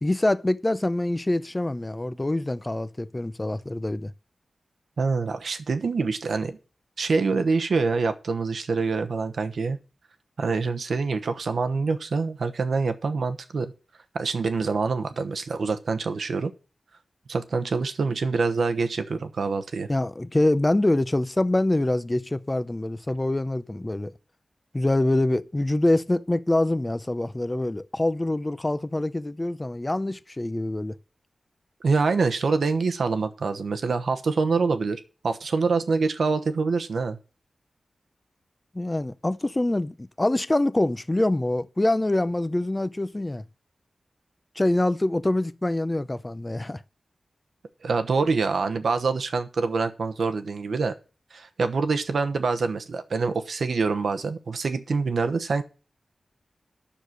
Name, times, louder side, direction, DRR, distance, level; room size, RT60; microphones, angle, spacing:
voice 1, 0.0-4.1 19.9-24.1 24.7-31.0 38.7-43.4 44.6-46.8, left 1 dB, 20° left, 0.6 m, -25 dB
voice 2, 5.0-6.6 7.0-9.8 10.4-13.7 14.1-16.5 17.3-19.9 31.8-37.2 47.8-50.9 51.3-55.6, right 4 dB, 80° right, 1.0 m, -25 dB
10.0 x 6.7 x 6.2 m
wide cardioid pair, 115°, 0 cm